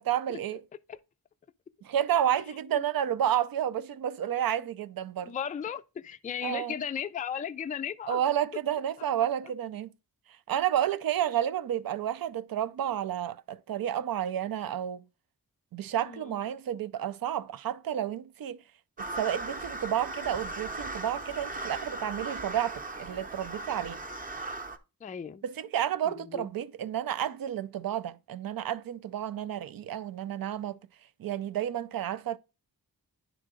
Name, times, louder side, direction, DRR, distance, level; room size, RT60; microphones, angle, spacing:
voice 1, 0.1-0.6 1.8-5.3 6.4-6.8 8.1-9.9 10.5-15.0 15.7-18.6 19.0-24.0 25.4-30.8 31.2-32.4, right 10 dB, 65° right, 0.5 m, -31 dB
voice 2, 5.2-8.2 16.1-16.4 25.0-25.4 26.1-26.5, left 8 dB, 25° left, 0.3 m, -36 dB
sound 1, 19.0-24.8, right 2 dB, 20° right, 0.8 m, -38 dB
10.0 x 3.8 x 3.7 m
wide cardioid pair, 100°, 37 cm